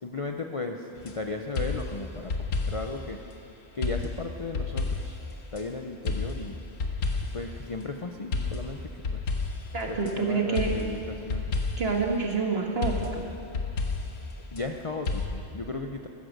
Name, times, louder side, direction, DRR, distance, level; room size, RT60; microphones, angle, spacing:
voice 1, 0.0-3.2 3.7-5.2 5.5-6.6 7.3-9.3 9.9-11.5 14.5-16.1, left 3 dB, 40° left, 4 dB, 0.5 m, -36 dB
sound 1, 1.0-1.2 1.5-3.0 3.8-5.6 6.0-7.5 8.3-10.1 10.5-12.0 12.8-14.7 15.0-15.3, left 3 dB, 85° left, 1.7 m, -31 dB
voice 2, 9.7-10.7 11.8-13.2, right 4 dB, 50° right, 1 dB, 1.8 m, -27 dB
14.5 x 14.5 x 6.5 m, 2.7 s
omnidirectional pair, 1.4 m